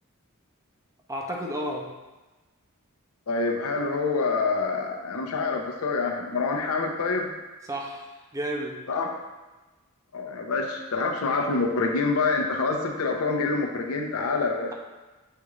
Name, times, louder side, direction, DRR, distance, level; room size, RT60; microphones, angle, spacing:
voice 1, 1.1-1.9 7.7-8.1 8.3-8.8, equal, 15° right, 0 dB, 0.5 m, -31 dB
voice 2, 3.3-7.3 8.9-9.1 10.1-14.7, left 4 dB, 90° left, 2 dB, 0.6 m, -26 dB
6.6 x 2.4 x 3.1 m, 1.2 s
head